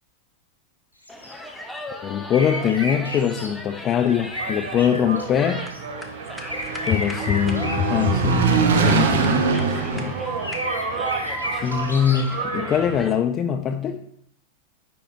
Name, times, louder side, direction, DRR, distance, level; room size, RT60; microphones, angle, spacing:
sound 1, 1.0-1.3 2.3-3.5 4.0-5.8 6.5-9.1 10.4-12.4, left 1 dB, 90° right, 1.0 m, -33 dB
sound 2, 1.1-13.1, left 1 dB, 5° left, 0.7 m, -37 dB
voice 1, 2.0-5.7 6.9-10.2 11.5-14.0, left 8 dB, 30° left, 0.3 m, -23 dB
Engine, 4.2-13.0, right 5 dB, 60° right, 0.6 m, -25 dB
9.6 x 4.3 x 2.5 m
figure-of-eight pair, 90°, 0 cm